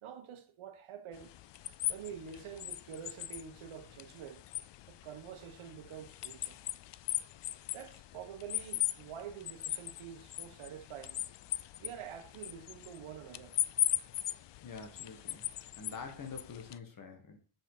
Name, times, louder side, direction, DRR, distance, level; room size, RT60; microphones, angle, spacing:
voice 1, 0.0-1.3 1.9-4.4 4.9-6.6 7.7-11.2 11.8-13.5, right 8 dB, 75° right, 1.4 m, -47 dB
sound 1, 1.1-16.8, left 13 dB, 60° left, 0.5 m, -39 dB
voice 2, 14.6-15.5 15.8-17.4, left 5 dB, 40° left, 1.7 m, -46 dB
7.0 x 6.0 x 5.0 m
wide cardioid pair, 165°, 50 cm